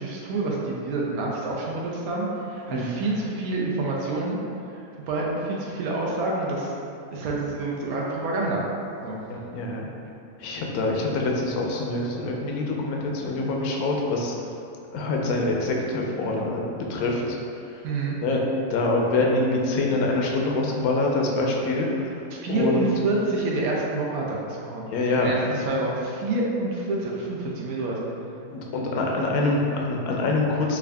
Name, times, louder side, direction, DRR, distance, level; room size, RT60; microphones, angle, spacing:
voice 1, 0.0-4.4 4.7-6.7 7.1-8.6 9.0-9.2 17.8-18.2 22.3-24.9 25.2-25.4 25.7-28.0, right 2 dB, 80° right, -3 dB, 1.1 m, -27 dB
voice 2, 9.3-9.9 10.4-14.3 14.9-16.6 16.9-17.4 17.7-17.8 18.2-18.4 18.7-22.9 24.9-25.9 28.5-30.8, left 2 dB, 85° left, -1 dB, 1.0 m, -25 dB
3.6 x 2.5 x 3.3 m, 2.6 s
omnidirectional pair, 1.5 m